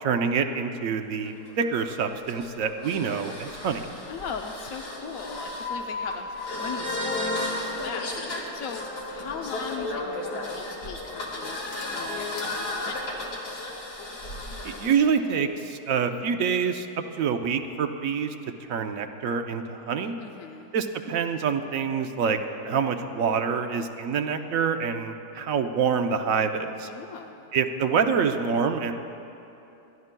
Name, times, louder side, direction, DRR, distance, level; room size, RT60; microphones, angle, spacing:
voice 1, 0.0-3.8 14.6-16.9 17.1-18.3 18.7-20.1 20.7-22.4 22.6-26.9 27.5-28.9, right 6 dB, 65° right, 6 dB, 1.0 m, -26 dB
sound 1, 1.2-15.0, left 2 dB, 85° left, 2.4 m, -34 dB
voice 2, 4.1-13.3 20.2-20.7 26.9-27.5, left 5 dB, 65° left, 2 dB, 1.0 m, -39 dB
27.0 x 12.5 x 2.2 m, 2.9 s
omnidirectional pair, 1.7 m